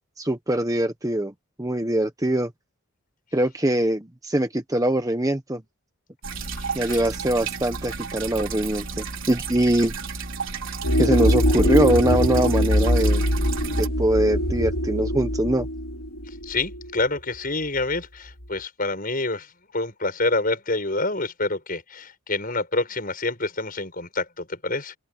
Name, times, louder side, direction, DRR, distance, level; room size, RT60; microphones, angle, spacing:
voice 1, 0.2-1.3 1.6-2.5 3.3-5.6 6.7-9.9 11.0-13.2 13.8-15.7, right 1 dB, 15° right, 1.1 m, -23 dB
sound 1, 6.2-13.9, right 5 dB, 60° right, 4.7 m, -33 dB
voice 2, 6.5-7.0 16.4-19.5 19.7-25.0, left 2 dB, 40° left, 6.4 m, -27 dB
sound 2, 10.8-17.4, equal, 80° left, 3.4 m, -23 dB
open air
head